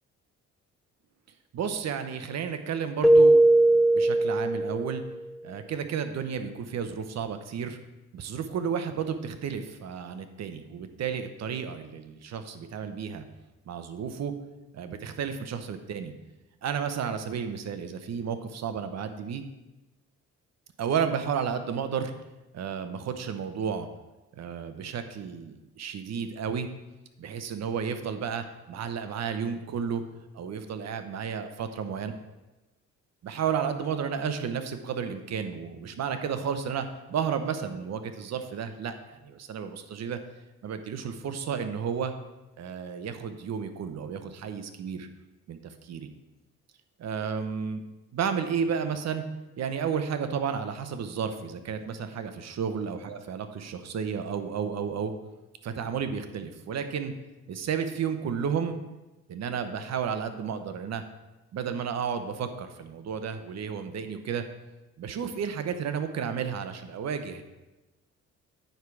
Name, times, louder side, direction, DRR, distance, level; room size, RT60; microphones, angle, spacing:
voice 1, 1.5-5.0 5.4-7.8 8.1-13.2 13.7-14.3 14.7-16.1 16.6-19.4 20.8-22.1 22.5-23.9 24.4-26.7 27.2-30.0 30.3-32.1 33.2-40.2 40.6-42.1 42.6-45.1 45.5-46.1 47.0-47.8 48.1-49.2 49.6-55.1 55.6-57.1 57.5-58.8 59.3-61.0 61.5-64.4 65.0-67.4, right 7 dB, 60° right, 8 dB, 1.0 m, -32 dB
Keyboard (musical), 3.0-5.0, right 2 dB, ahead, 0.3 m, -19 dB
9.3 x 4.8 x 6.0 m, 1.0 s
cardioid pair, 90°, 30 cm